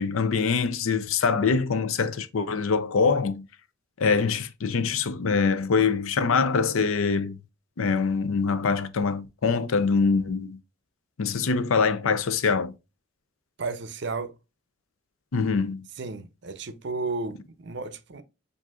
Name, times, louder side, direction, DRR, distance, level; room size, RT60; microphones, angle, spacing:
voice 1, 0.0-3.4 4.0-7.4 7.8-10.6 11.2-12.7 15.3-15.8, left 5 dB, 80° left, 0.5 m, -24 dB
voice 2, 13.6-14.3 16.0-18.2, right 3 dB, 55° right, 0.6 m, -33 dB
7.4 x 2.6 x 2.3 m
head